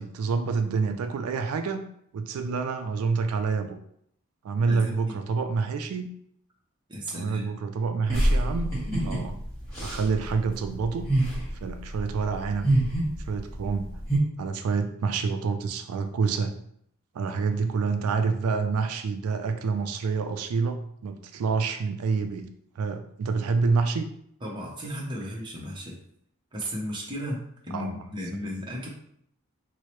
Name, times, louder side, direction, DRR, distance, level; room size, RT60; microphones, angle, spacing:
voice 1, 0.0-1.8 2.1-3.8 4.4-6.1 7.1-8.7 9.0-9.4 9.8-11.1 11.6-12.7 13.2-14.0 14.4-16.5 17.1-22.5 22.8-24.1 27.7-28.1, right 4 dB, 85° right, 8 dB, 0.3 m, -27 dB
voice 2, 4.7-5.1 6.9-7.5 24.4-26.0 26.5-28.9, equal, 20° right, -3 dB, 0.7 m, -35 dB
sound 1, 8.1-14.2, right 1 dB, 15° left, 1.4 m, -27 dB
4.5 x 2.0 x 3.0 m, 0.71 s
head